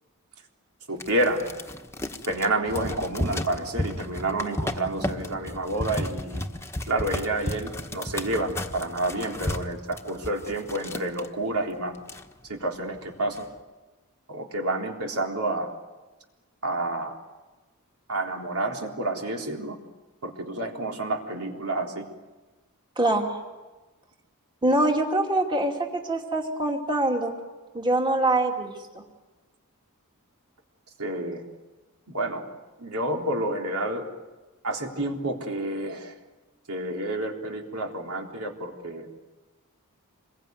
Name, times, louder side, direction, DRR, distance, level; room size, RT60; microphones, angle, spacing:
voice 1, 0.9-1.5 2.3-6.5 6.9-11.9 12.5-13.5 14.3-15.7 16.6-17.1 18.1-19.8 20.2-22.1 31.0-31.4 32.1-32.4 32.8-34.1 34.6-36.1 36.7-39.1, right 2 dB, 75° right, 1 dB, 3.6 m, -29 dB
sound 1, 1.0-11.3 11.7-11.8 12.0-12.7 13.1-13.5, left 1 dB, 10° left, 1.3 m, -33 dB
voice 2, 23.0-23.3 24.6-27.3 27.7-29.0, right 2 dB, 20° right, 2 dB, 2.6 m, -24 dB
27.5 x 22.0 x 9.5 m, 1.2 s
head